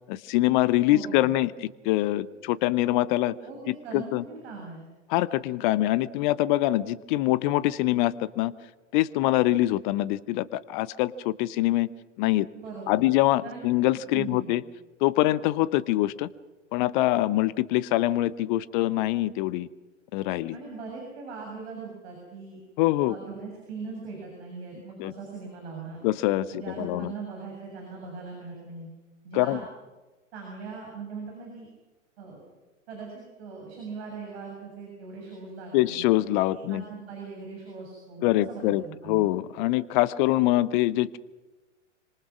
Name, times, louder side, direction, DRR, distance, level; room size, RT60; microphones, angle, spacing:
voice 1, 0.1-3.3 3.7-4.2 5.1-8.5 8.9-11.9 12.2-12.5 12.9-14.6 15.0-16.3 16.7-19.7 20.1-20.6 22.8-23.2 25.0-25.1 26.0-27.1 29.3-29.6 35.7-36.8 38.2-41.2, left 16 dB, 40° left, 19 dB, 0.9 m, -24 dB
voice 2, 0.9-1.3 3.4-4.9 12.5-13.1 13.4-13.7 14.1-14.6 20.5-22.6 23.1-26.0 26.5-28.9 29.2-29.6 30.3-31.7 32.2-32.4 32.9-36.1 36.5-39.3, right 4 dB, 55° right, 0 dB, 7.6 m, -40 dB
26.5 x 25.5 x 6.2 m, 1.2 s
figure-of-eight pair, 95°, 38 cm